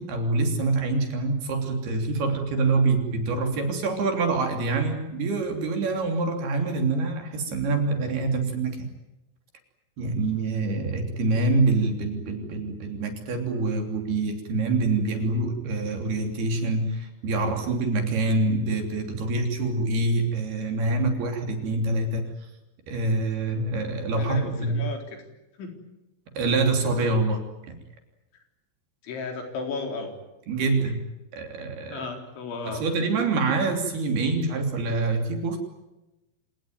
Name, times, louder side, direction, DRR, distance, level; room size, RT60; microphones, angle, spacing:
voice 1, 0.0-8.8 10.0-22.2 22.9-24.8 26.3-27.4 27.7-27.8 30.5-31.0 31.3-32.1 32.7-35.6, right 3 dB, 55° right, 4 dB, 4.8 m, -25 dB
voice 2, 24.2-25.0 25.6-25.7 29.0-30.1 31.9-32.8, left 4 dB, 70° left, 3 dB, 6.3 m, -34 dB
28.0 x 18.5 x 9.5 m, 0.99 s
omnidirectional pair, 5.6 m